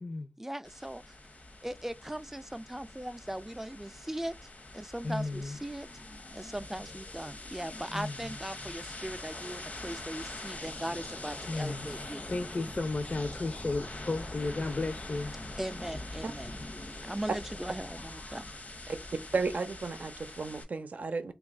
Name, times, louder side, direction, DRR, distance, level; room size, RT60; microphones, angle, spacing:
voice 1, 0.4-1.2 1.6-4.4 4.7-5.9 6.3-12.2 15.6-16.6 17.0-18.5, right 1 dB, 15° right, 0.3 m, -39 dB
sound 1, 0.6-20.6, left 2 dB, 85° left, 0.9 m, -43 dB
voice 2, 5.0-5.6 6.8-6.9 7.9-8.1 11.5-11.9 12.3-15.3, left 2 dB, 55° left, 0.5 m, -33 dB
voice 3, 19.3-21.3, right 4 dB, 90° right, 0.5 m, -33 dB
3.1 x 2.3 x 3.5 m
wide cardioid pair, 55°, 3 cm